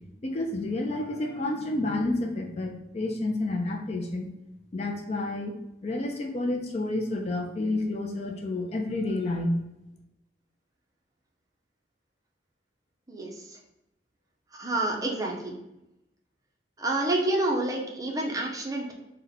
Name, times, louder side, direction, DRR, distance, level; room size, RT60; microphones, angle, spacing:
voice 1, 0.2-4.3 4.7-5.5 5.8-9.5, left 2 dB, 35° left, 3 dB, 0.4 m, -30 dB
voice 2, 13.1-13.6 14.5-15.5 16.8-18.9, right 2 dB, 20° right, 0 dB, 0.6 m, -28 dB
4.1 x 2.2 x 3.9 m, 0.89 s
head